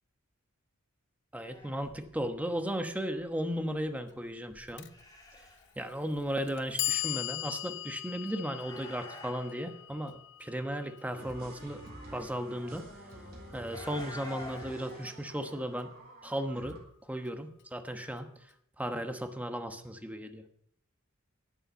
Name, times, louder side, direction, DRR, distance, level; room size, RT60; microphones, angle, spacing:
voice 1, 1.3-4.9 5.8-11.8 12.1-12.8 13.5-15.9 16.2-18.3 18.8-20.4, equal, 5° right, 6 dB, 1.1 m, -35 dB
sound 1, 1.4-7.2 8.3-9.8 11.6-12.6 13.6-15.1, left 2 dB, 20° left, 3.1 m, -50 dB
Clock, 4.8-4.9 5.9-6.0 6.5-12.5, left 17 dB, 55° left, 0.7 m, -39 dB
sound 2, 11.1-16.8, right 1 dB, 45° right, 4.3 m, -49 dB
11.5 x 8.9 x 6.8 m, 0.72 s
head